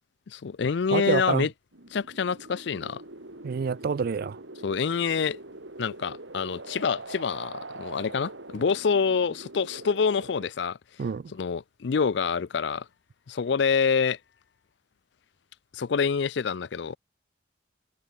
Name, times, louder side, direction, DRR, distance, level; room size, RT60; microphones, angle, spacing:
voice 1, 0.3-1.5 1.9-3.0 4.6-5.4 5.8-10.8 11.3-12.9 13.3-14.2 15.7-17.0, left 5 dB, 60° left, 0.4 m, -26 dB
voice 2, 0.9-1.5 3.4-4.4 11.0-11.3, right 5 dB, 50° right, 0.3 m, -27 dB
sound 1, 1.7-10.5, right 2 dB, 75° right, 3.2 m, -43 dB
head